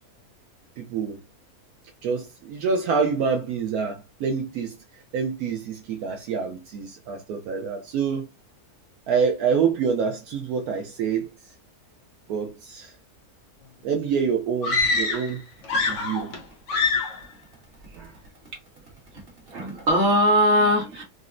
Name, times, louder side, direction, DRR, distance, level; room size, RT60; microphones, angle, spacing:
voice 1, 0.8-1.2 2.0-4.8 5.1-8.3 9.1-11.3 12.3-12.9 13.8-15.4 15.9-16.3 17.9-18.1, right 6 dB, 75° right, 1.0 m, -26 dB
sound 1, 14.6-15.4 15.6-16.4 16.7-17.2, left 4 dB, 60° left, 1.0 m, -24 dB
voice 2, 15.7-16.2 19.5-21.0, equal, 40° right, 1.3 m, -21 dB
3.9 x 2.1 x 2.4 m
omnidirectional pair, 1.6 m